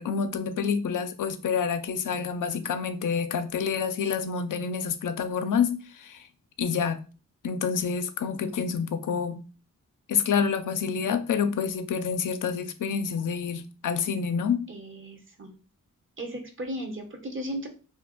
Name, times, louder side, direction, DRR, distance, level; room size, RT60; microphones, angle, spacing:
voice 1, 0.0-6.2 6.6-7.0 7.4-9.4 10.1-14.7, left 6 dB, 80° left, 0.5 m, -28 dB
voice 2, 14.7-15.6 16.2-17.7, right 1 dB, 40° right, 0.9 m, -36 dB
2.7 x 2.4 x 3.6 m
wide cardioid pair, 95°, 31 cm